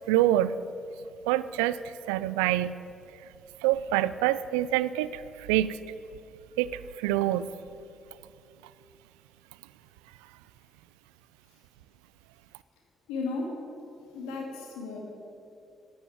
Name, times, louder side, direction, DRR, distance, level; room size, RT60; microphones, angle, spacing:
voice 1, 0.1-0.6 1.3-1.8 2.1-2.7 3.6-5.8 6.6-7.5, right 14 dB, 80° right, 16 dB, 0.3 m, -26 dB
voice 2, 13.1-13.5 14.1-15.0, left 3 dB, 80° left, 0 dB, 2.3 m, -34 dB
10.5 x 9.7 x 8.7 m, 2.7 s
hypercardioid pair, 45°, 0 cm